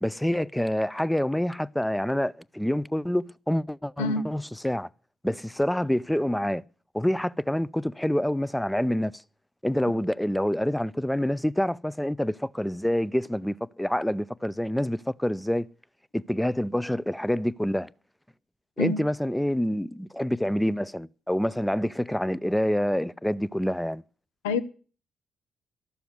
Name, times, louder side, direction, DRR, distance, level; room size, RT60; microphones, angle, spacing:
voice 1, 0.0-4.9 5.2-6.6 6.9-9.1 9.6-15.7 16.1-17.9 18.8-24.0, equal, 5° left, 0.5 m, -27 dB
voice 2, 4.0-4.2 18.8-19.0 24.4-24.6, left 3 dB, 80° left, 0.7 m, -26 dB
12.5 x 7.0 x 9.4 m
hypercardioid pair, 40°, 0 cm